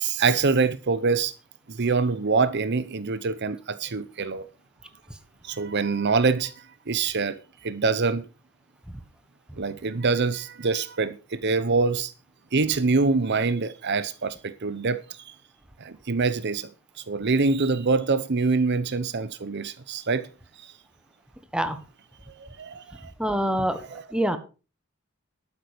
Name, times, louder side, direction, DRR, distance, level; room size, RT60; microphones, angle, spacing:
voice 1, 0.0-1.3 1.7-4.5 5.4-8.3 9.6-12.1 12.5-15.4 15.8-16.7 17.0-20.3 20.6-20.7 22.3-23.1 23.8-24.0, right 4 dB, 55° right, 0.8 m, -25 dB
voice 2, 23.2-24.4, right 1 dB, 5° right, 1.4 m, -26 dB
12.0 x 9.1 x 5.1 m
head